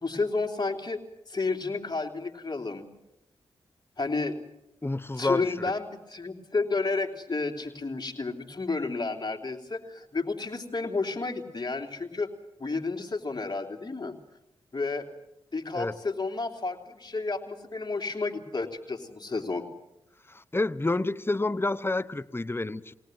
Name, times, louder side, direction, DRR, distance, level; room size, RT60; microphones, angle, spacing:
voice 1, 0.0-1.0 1.3-2.9 4.0-4.3 5.2-12.3 12.6-14.1 14.7-15.1 15.5-19.6, left 3 dB, 40° left, 4 dB, 3.2 m, -31 dB
voice 2, 4.8-5.5 15.7-15.9 20.3-22.9, left 2 dB, 20° left, 15 dB, 1.0 m, -29 dB
22.5 x 18.0 x 8.0 m, 0.89 s
supercardioid pair, 40°, 11 cm